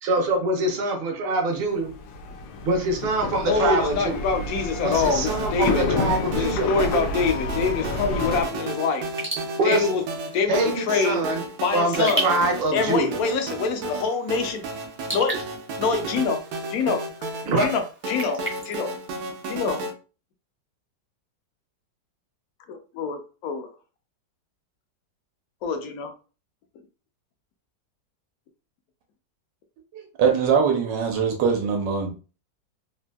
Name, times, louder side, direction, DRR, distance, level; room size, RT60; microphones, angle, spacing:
voice 1, 0.0-1.9 2.6-4.2 4.8-7.0 9.6-9.9 10.5-11.4 11.7-13.2 17.5-17.6, right 2 dB, 55° right, 0.6 m, -24 dB
sound 1, 1.7-8.4, left 3 dB, 90° left, 1.3 m, -30 dB
voice 2, 3.4-5.9 6.3-9.0 9.6-10.0 10.3-11.2 11.6-12.3 12.7-14.6 15.1-15.4 15.8-16.4 16.7-17.0 17.6-17.8 18.1-18.9 19.4-19.8 22.7-23.7 25.6-26.1, left 5 dB, 70° left, 0.9 m, -25 dB
sound 2, 4.9-19.9, right 2 dB, 70° right, 1.0 m, -33 dB
Raindrop / Drip, 9.0-19.8, right 2 dB, 15° right, 0.4 m, -37 dB
voice 3, 29.9-32.1, right 6 dB, 90° right, 1.4 m, -22 dB
3.4 x 2.6 x 2.2 m
omnidirectional pair, 1.9 m